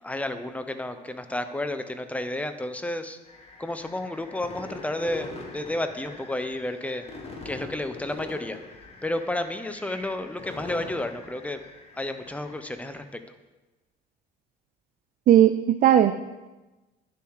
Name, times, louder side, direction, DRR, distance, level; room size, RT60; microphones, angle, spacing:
voice 1, 0.0-3.2 3.6-7.0 7.4-8.6 9.0-11.6 11.9-13.0, left 1 dB, 10° left, 9 dB, 0.7 m, -31 dB
hits and whistling sequence, 3.2-13.0, left 2 dB, 35° left, 1.8 m, -43 dB
voice 2, 15.3-16.1, right 11 dB, 55° right, 10 dB, 0.4 m, -17 dB
9.9 x 7.0 x 4.8 m, 1.1 s
cardioid pair, 110°, 17 cm